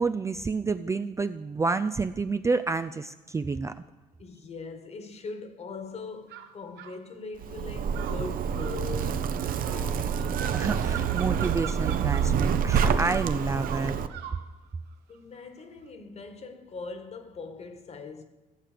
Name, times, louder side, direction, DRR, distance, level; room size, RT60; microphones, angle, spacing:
voice 1, 0.0-3.7 10.5-14.0, right 4 dB, 15° right, 0.4 m, -29 dB
voice 2, 4.2-9.2 9.5-10.5 15.1-18.3, left 4 dB, 40° left, 1.6 m, -41 dB
sound 1, 6.3-7.0 7.9-14.4, right 9 dB, 90° right, 1.3 m, -41 dB
Zipper (clothing), 7.4-14.1, right 7 dB, 55° right, 0.8 m, -27 dB
15.5 x 7.5 x 6.8 m
cardioid pair, 110°, 17 cm